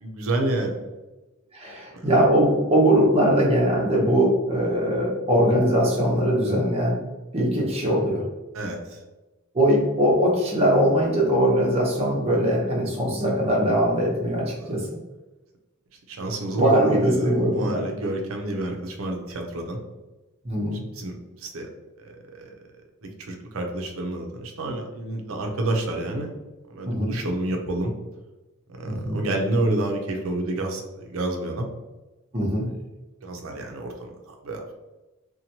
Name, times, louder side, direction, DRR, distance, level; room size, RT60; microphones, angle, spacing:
voice 1, 0.0-0.8 8.5-9.0 16.1-19.8 21.0-21.1 21.4-21.7 22.0-22.5 23.2-26.3 26.7-27.9 28.7-31.7 33.2-34.6, right 2 dB, 75° right, 3 dB, 0.5 m, -29 dB
voice 2, 1.5-7.0 7.3-8.2 9.5-14.9 16.5-17.9 20.4-20.8 26.8-27.2 28.8-29.2 32.3-32.7, equal, 30° right, -4 dB, 0.7 m, -21 dB
2.8 x 2.2 x 2.8 m, 1.1 s
head